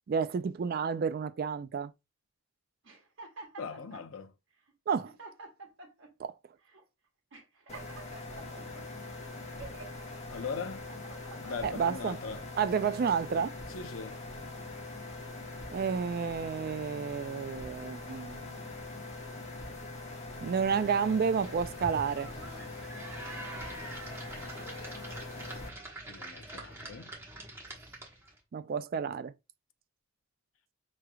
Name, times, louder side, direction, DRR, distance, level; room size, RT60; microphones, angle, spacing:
voice 1, 0.1-1.9 4.9-5.1 6.2-6.3 11.6-12.2 12.6-13.5 15.7-18.6 20.4-22.3 28.5-29.3, right 6 dB, 45° right, 0.3 m, -30 dB
sound 1, 2.8-4.1 4.7-4.8 5.0-6.1 6.7-6.8 7.3-8.8 9.3-10.0 10.6-11.8 12.4-13.4, right 3 dB, 60° right, 1.2 m, -49 dB
voice 2, 3.6-4.3 10.3-10.9 11.4-12.4 13.7-14.2 26.1-27.1, left 5 dB, 70° left, 0.6 m, -40 dB
sound 2, 7.7-25.7, left 2 dB, 30° left, 1.3 m, -43 dB
sound 3, 20.6-28.4, right 1 dB, 10° right, 1.2 m, -45 dB
6.0 x 3.2 x 2.2 m
head